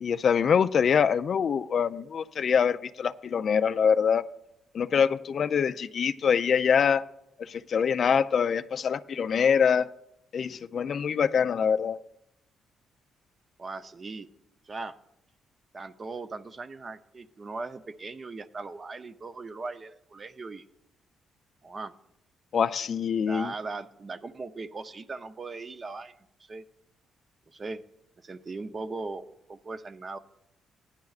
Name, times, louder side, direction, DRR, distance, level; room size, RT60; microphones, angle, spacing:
voice 1, 0.0-4.2 4.7-7.0 7.4-9.9 10.3-12.0 22.5-23.5, left 7 dB, 55° left, 11 dB, 0.3 m, -24 dB
voice 2, 13.6-14.3 14.7-15.0 15.7-20.6 21.6-21.9 23.2-26.6 27.5-27.8 28.2-30.2, right 3 dB, 35° right, 10 dB, 0.6 m, -39 dB
16.0 x 10.5 x 2.4 m, 0.84 s
cardioid pair, 90°, 0 cm